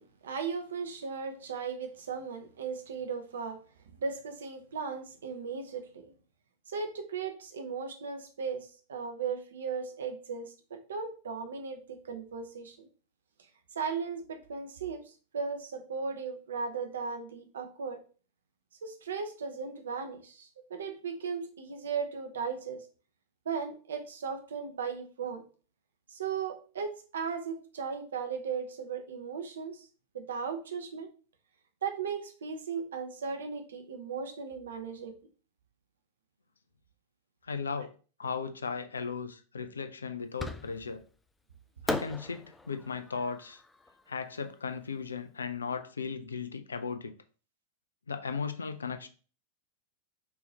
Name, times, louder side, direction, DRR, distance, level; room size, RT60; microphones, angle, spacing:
voice 1, 0.0-3.6 4.0-6.1 6.7-11.8 12.1-12.8 13.7-18.0 18.8-22.8 23.4-25.4 26.1-29.9 30.1-31.1 31.8-35.1, right 5 dB, 65° right, 0.8 m, -37 dB
voice 2, 37.4-37.9 38.2-41.0 41.8-43.6 44.1-47.1 48.1-49.1, left 5 dB, 75° left, 0.5 m, -36 dB
Fireworks, 40.4-41.1 41.9-45.0, left 2 dB, 10° left, 0.4 m, -39 dB
5.5 x 2.8 x 2.8 m
figure-of-eight pair, 90°, 0 cm